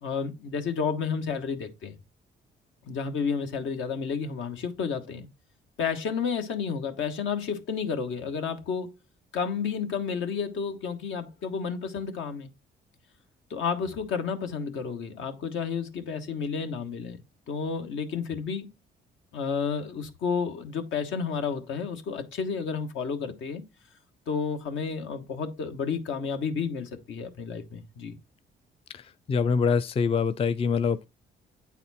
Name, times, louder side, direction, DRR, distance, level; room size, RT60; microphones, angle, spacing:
voice 1, 0.0-2.0 2.8-5.3 5.8-8.9 9.3-12.5 13.5-17.2 17.5-18.7 19.3-23.6 24.3-28.2, left 6 dB, 75° left, 1.3 m, -31 dB
voice 2, 28.9-31.1, left 5 dB, 30° left, 0.4 m, -25 dB
8.3 x 4.2 x 4.1 m
cardioid pair, 90°, 20 cm